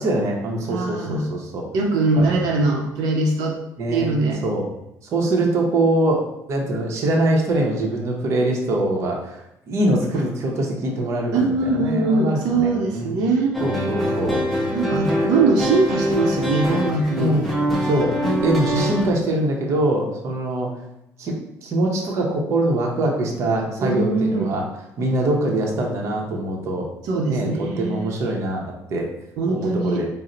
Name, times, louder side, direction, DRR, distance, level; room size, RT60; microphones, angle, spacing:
voice 1, 0.0-1.7 2.1-2.4 3.8-4.1 4.4-4.7 5.1-6.2 6.5-13.1 13.6-14.4 17.2-17.6 17.8-18.2 18.4-20.7 21.2-21.3 21.6-24.7 25.0-26.9 27.3-28.6 28.9-29.1 29.5-30.1, right 1 dB, 45° right, 0 dB, 0.7 m, -23 dB
voice 2, 0.7-1.3 1.7-3.6 3.9-4.4 11.3-13.5 14.7-17.4 18.7-18.9 23.8-24.5 27.0-28.1 29.4-30.0, right 3 dB, 85° right, 0 dB, 0.6 m, -21 dB
sound 1, 13.5-19.1, equal, ahead, 0.6 m, -23 dB
4.2 x 2.0 x 3.8 m, 0.84 s
cardioid pair, 165°, 7 cm